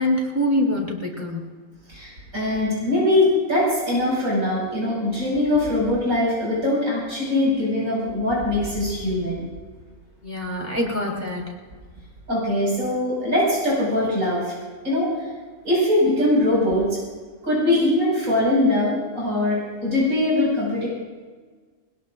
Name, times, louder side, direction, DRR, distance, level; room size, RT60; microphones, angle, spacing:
voice 1, 0.0-1.5 10.2-11.5, left 1 dB, 10° right, -2 dB, 3.6 m, -24 dB
voice 2, 1.9-9.4 12.3-14.5 14.8-15.1 15.6-17.0 17.4-20.9, left 1 dB, 90° right, -5 dB, 6.2 m, -22 dB
21.5 x 20.5 x 2.5 m, 1.4 s
omnidirectional pair, 1.4 m